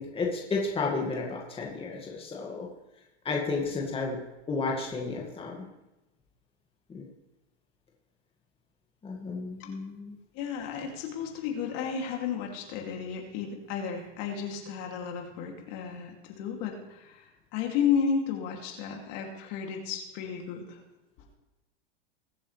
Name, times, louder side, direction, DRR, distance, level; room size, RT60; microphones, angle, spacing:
voice 1, 0.0-2.7 3.2-4.2 4.5-5.7 6.9-7.0 9.0-10.1, left 3 dB, 15° left, -2 dB, 2.0 m, -32 dB
voice 2, 10.3-17.3 17.5-20.8, left 7 dB, 50° left, 1 dB, 2.7 m, -33 dB
21.5 x 7.4 x 3.3 m, 1.0 s
hypercardioid pair, 125°, 34 cm